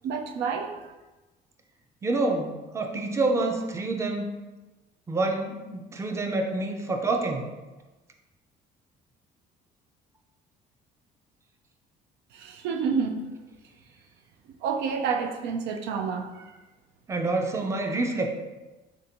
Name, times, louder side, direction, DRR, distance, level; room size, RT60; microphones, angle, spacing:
voice 1, 0.0-0.9 12.3-13.2 14.6-16.5, right 6 dB, 80° right, 3 dB, 0.5 m, -29 dB
voice 2, 2.0-4.3 5.1-7.5 17.1-18.3, right 2 dB, 15° right, 3 dB, 0.5 m, -27 dB
3.6 x 2.6 x 4.3 m, 1.1 s
cardioid pair, 110°, 17 cm